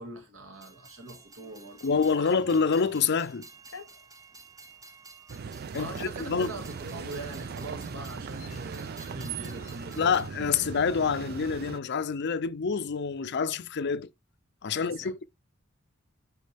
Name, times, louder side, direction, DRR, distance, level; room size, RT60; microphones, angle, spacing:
voice 1, 0.0-2.3 5.7-10.2 14.7-15.1, right 2 dB, 75° right, 2.1 m, -42 dB
Train, 0.5-10.3, right 3 dB, 15° right, 0.9 m, -52 dB
Meow, 1.3-3.0 3.7-3.9 4.7-4.8 5.2-5.4 6.4-6.6 6.9-7.4 8.0-8.8 9.6-10.3 11.0-11.7, left 5 dB, 90° left, 1.0 m, -50 dB
voice 2, 1.8-3.5 5.7-6.6 10.0-14.1 14.6-15.2, left 5 dB, 55° left, 0.6 m, -27 dB
sound 1, 5.3-11.8, right 6 dB, 50° right, 0.4 m, -39 dB
9.4 x 4.4 x 3.4 m
head